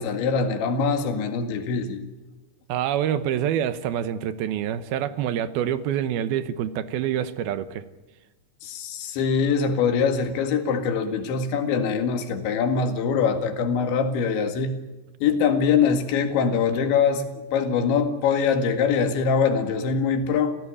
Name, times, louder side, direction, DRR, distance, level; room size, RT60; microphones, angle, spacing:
voice 1, 0.0-2.0 8.6-14.8 15.2-20.6, left 6 dB, 90° left, 4.3 m, -23 dB
voice 2, 2.7-7.8, right 10 dB, 70° right, 2.6 m, -26 dB
28.5 x 16.5 x 10.0 m
omnidirectional pair, 5.1 m